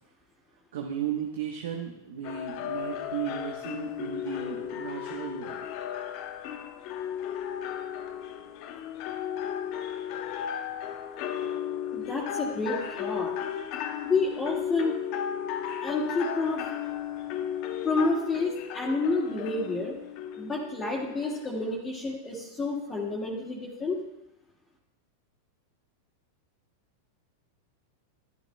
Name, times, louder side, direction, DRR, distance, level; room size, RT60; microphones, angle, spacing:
voice 1, 0.7-5.7, right 8 dB, 65° right, 2 dB, 1.0 m, -35 dB
sound 1, 2.2-21.8, left 9 dB, 50° left, 0.8 m, -35 dB
voice 2, 11.9-13.3 14.1-14.9 15.8-16.6 17.8-19.9 20.4-24.0, left 3 dB, 20° left, -5 dB, 1.9 m, -29 dB
12.0 x 12.0 x 2.2 m, 0.88 s
hypercardioid pair, 95°, 0 cm